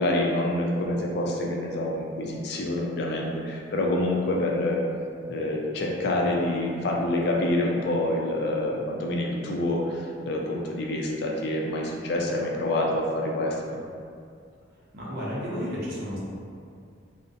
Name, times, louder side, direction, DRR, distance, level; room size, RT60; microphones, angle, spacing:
voice 1, 0.0-4.8 5.3-13.5, left 1 dB, 55° left, -1 dB, 0.4 m, -27 dB
voice 2, 14.9-16.2, equal, 55° right, -7 dB, 0.6 m, -32 dB
2.5 x 2.0 x 2.5 m, 2.3 s
head